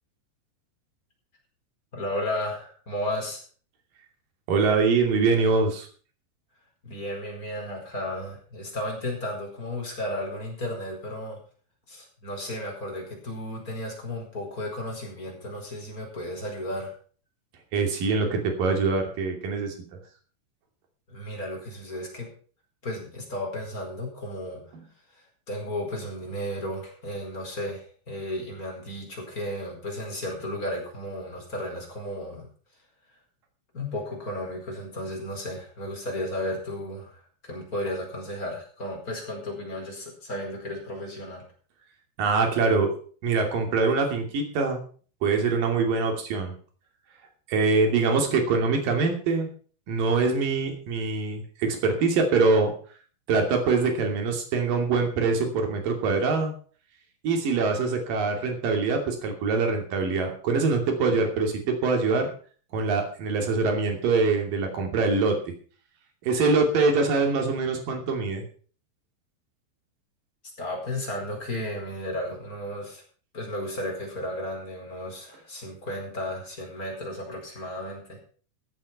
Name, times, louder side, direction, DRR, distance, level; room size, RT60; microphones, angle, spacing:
voice 1, 1.9-3.4 6.8-11.4 11.9-16.9 21.1-22.3 22.8-24.6 25.5-32.5 33.7-41.4 70.6-73.0 73.3-78.2, left 1 dB, 20° left, 0 dB, 4.7 m, -34 dB
voice 2, 4.5-5.9 17.7-19.7 42.2-42.9 43.2-44.8 45.2-46.5 47.5-49.5 49.9-52.7 53.3-56.5 57.2-62.3 62.7-65.4 66.2-68.4, right 4 dB, 50° right, 3 dB, 4.1 m, -24 dB
15.5 x 8.6 x 5.8 m, 0.43 s
omnidirectional pair, 5.5 m